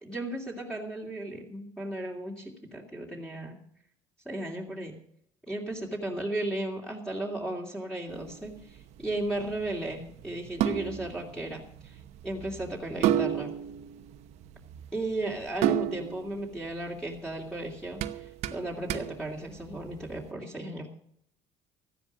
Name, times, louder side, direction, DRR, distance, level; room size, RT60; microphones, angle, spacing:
voice 1, 0.0-3.6 4.2-4.9 5.5-13.5 14.9-20.9, right 1 dB, 5° left, -2 dB, 2.8 m, -35 dB
sound 1, 8.1-20.2, right 11 dB, 70° right, 0.9 m, -33 dB
14.5 x 10.5 x 6.4 m, 0.68 s
cardioid pair, 105°, 12 cm